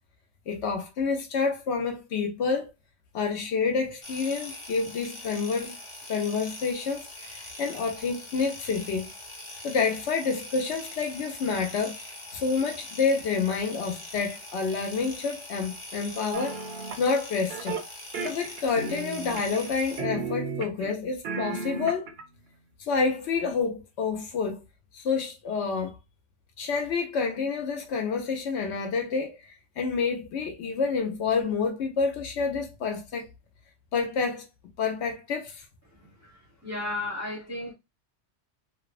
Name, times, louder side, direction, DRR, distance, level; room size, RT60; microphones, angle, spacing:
voice 1, 0.5-2.7 3.1-5.8 6.1-9.1 9.6-12.0 12.3-16.6 17.0-17.8 18.2-22.1 22.9-24.6 24.9-26.0 26.6-29.4 29.8-33.3 33.9-34.5 34.8-35.6, left 5 dB, 70° left, 0.8 m, -28 dB
sound 1, 4.0-20.0, left 1 dB, 35° left, 0.6 m, -42 dB
sound 2, 16.3-17.0 17.5-17.9 18.1-19.7 20.0-20.9 21.2-22.2, right 5 dB, 65° right, 0.8 m, -34 dB
voice 2, 36.0-37.7, left 2 dB, 15° right, 0.6 m, -35 dB
2.9 x 2.1 x 2.4 m
omnidirectional pair, 1.2 m